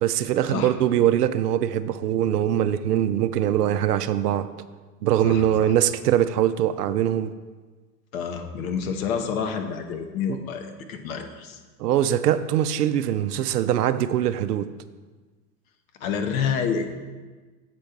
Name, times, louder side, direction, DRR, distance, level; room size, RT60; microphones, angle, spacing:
voice 1, 0.0-4.5 5.0-7.3 10.3-10.4 11.8-14.7, right 11 dB, 70° right, 11 dB, 0.6 m, -22 dB
voice 2, 5.2-5.7 8.1-11.6 16.0-16.9, left 6 dB, 55° left, 6 dB, 1.1 m, -28 dB
7.6 x 4.5 x 5.2 m, 1.3 s
hypercardioid pair, 95°, 49 cm